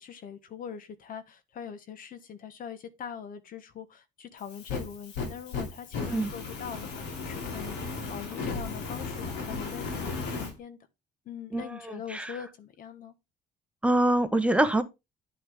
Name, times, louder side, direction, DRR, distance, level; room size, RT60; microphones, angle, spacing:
voice 1, 0.0-10.8 11.2-13.1, left 8 dB, 55° left, 1.5 m, -42 dB
Fire, 4.4-10.5, left 4 dB, 85° left, 3.5 m, -35 dB
voice 2, 11.5-12.4 13.8-14.8, right 1 dB, 5° right, 1.1 m, -25 dB
10.5 x 6.2 x 3.7 m
cardioid pair, 110°, 17 cm